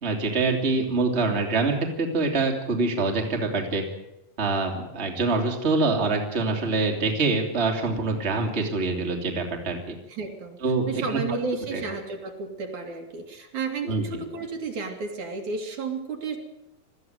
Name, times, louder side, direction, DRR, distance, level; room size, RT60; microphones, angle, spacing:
voice 1, 0.0-3.8 4.4-9.8 10.6-11.0 11.7-11.8 13.9-14.0, right 3 dB, 20° right, 2 dB, 2.6 m, -25 dB
voice 2, 10.1-10.6 10.9-16.4, right 4 dB, 60° right, 2 dB, 3.6 m, -32 dB
21.5 x 14.5 x 9.4 m, 0.91 s
omnidirectional pair, 4.0 m